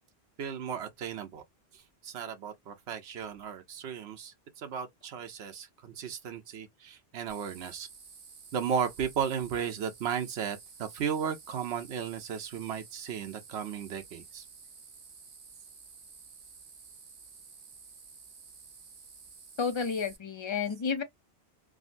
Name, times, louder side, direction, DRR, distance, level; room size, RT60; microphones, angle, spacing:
voice 1, 0.4-1.4 1.7-7.9 8.5-14.4, right 7 dB, 85° right, 1.0 m, -35 dB
sound 1, 7.3-20.2, right 5 dB, 50° right, 0.9 m, -52 dB
voice 2, 19.6-21.0, left 5 dB, 35° left, 0.6 m, -31 dB
3.6 x 2.1 x 2.5 m
omnidirectional pair, 1.1 m